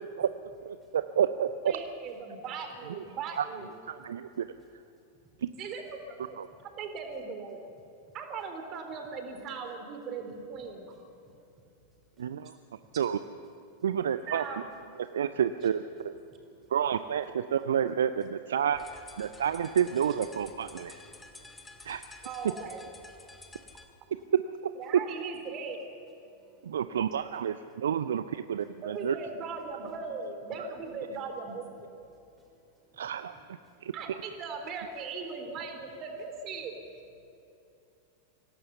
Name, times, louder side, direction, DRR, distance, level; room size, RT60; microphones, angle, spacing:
voice 1, 1.1-1.7 3.4-3.5 3.9-4.5 5.4-5.5 6.4-6.5 12.2-12.5 13.0-13.2 13.8-14.5 15.1-16.2 16.7-18.8 19.2-21.0 21.8-22.0 24.3-24.4 26.6-29.1 33.0-33.4 33.8-33.9, right 8 dB, 65° right, 0.6 m, -29 dB
voice 2, 1.7-3.7 5.6-5.8 6.1-6.4 6.6-7.7 8.1-10.9 12.9-13.0 14.3-14.6 22.2-22.9 24.8-25.8 26.9-27.0 28.8-31.7 32.0-32.1 33.3-33.4 33.9-36.7, right 5 dB, 35° right, 3.7 m, -39 dB
voice 3, 4.9-5.4 6.3-6.7 10.9-12.9 16.2-16.7 21.0-21.9 23.2-23.6 23.9-24.0 26.2-27.0 32.1-33.1 33.6-33.9, right 2 dB, 15° right, 5.1 m, -66 dB
sound 1, 18.7-23.9, left 3 dB, 10° left, 2.2 m, -51 dB
25.5 x 17.5 x 7.0 m
figure-of-eight pair, 90°, 0 cm